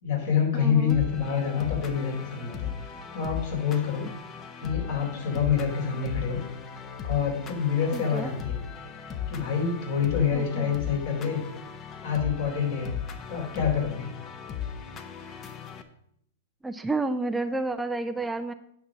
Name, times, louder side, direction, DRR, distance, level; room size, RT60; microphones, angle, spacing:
voice 1, 0.0-4.1 4.6-6.4 7.0-8.6 9.3-11.4 12.0-13.0 13.3-14.1, left 7 dB, 60° left, 0 dB, 4.2 m, -27 dB
voice 2, 0.5-1.0 7.9-8.3 10.3-10.7 16.6-18.5, right 2 dB, 10° right, 9 dB, 0.5 m, -30 dB
Strings & Piano, 0.9-15.8, left 8 dB, 30° left, 1.0 m, -37 dB
9.4 x 5.9 x 6.2 m, 0.71 s
hypercardioid pair, 115°, 0 cm